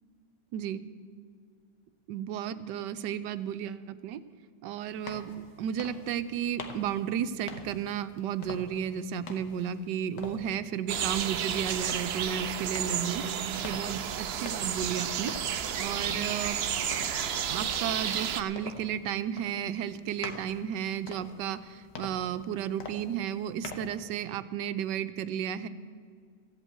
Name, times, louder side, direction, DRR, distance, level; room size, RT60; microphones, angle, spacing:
voice 1, 0.5-0.8 2.1-4.2 4.6-5.3 5.6-13.2 13.6-15.3 15.8-16.6 17.5-25.7, right 9 dB, 85° right, 12 dB, 1.3 m, -33 dB
sound 1, 4.8-24.0, left 4 dB, 80° left, 1.8 m, -47 dB
sound 2, 10.9-18.4, right 8 dB, 65° right, 0.6 m, -32 dB
14.5 x 8.2 x 8.7 m, 2.1 s
omnidirectional pair, 1.8 m